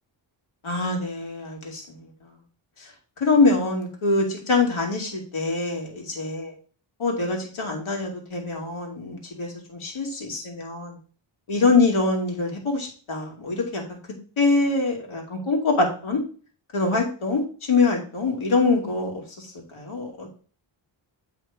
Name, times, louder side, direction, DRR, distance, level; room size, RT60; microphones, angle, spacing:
voice 1, 0.6-2.1 2.8-2.9 3.2-6.5 7.0-11.0 11.5-14.0 14.4-16.2 16.7-17.4 17.7-20.3, left 3 dB, 75° left, 2.5 m, -24 dB
8.5 x 4.1 x 4.7 m
wide cardioid pair, 90°, 49 cm